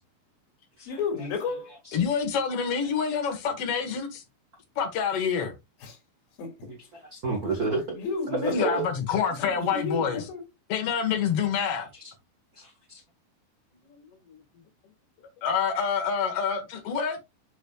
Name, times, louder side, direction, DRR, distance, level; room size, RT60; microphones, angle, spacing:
voice 1, 0.9-1.7 5.8-6.0 6.4-6.5 7.3-8.8 9.4-10.4, left 5 dB, 75° left, 4.0 m, -32 dB
voice 2, 1.9-4.2 4.8-5.5 8.5-10.2 10.7-11.9 15.4-17.2, left 6 dB, 55° left, 1.9 m, -27 dB
voice 3, 6.7-7.8 8.3-8.8 11.7-11.8 12.5-13.0, right 3 dB, 60° right, 0.9 m, -31 dB
8.3 x 6.4 x 2.3 m
omnidirectional pair, 4.3 m